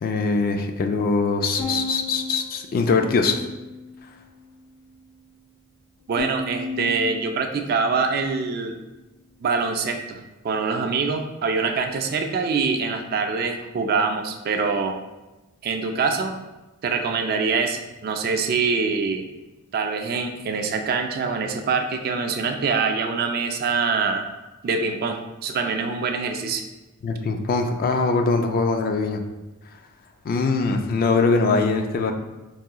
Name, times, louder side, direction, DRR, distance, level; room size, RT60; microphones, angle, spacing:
voice 1, 0.0-3.3 27.0-29.2 30.2-32.1, left 4 dB, 45° left, 5 dB, 0.3 m, -22 dB
Bowed string instrument, 1.6-3.9 4.4-5.2 6.2-8.7, left 3 dB, 75° left, 1.2 m, -35 dB
voice 2, 6.1-8.7 9.4-15.0 15.6-16.4 16.8-19.2 19.7-24.3 24.6-26.6, right 4 dB, 45° right, 5 dB, 0.3 m, -24 dB
4.7 x 2.8 x 2.3 m, 1.1 s
head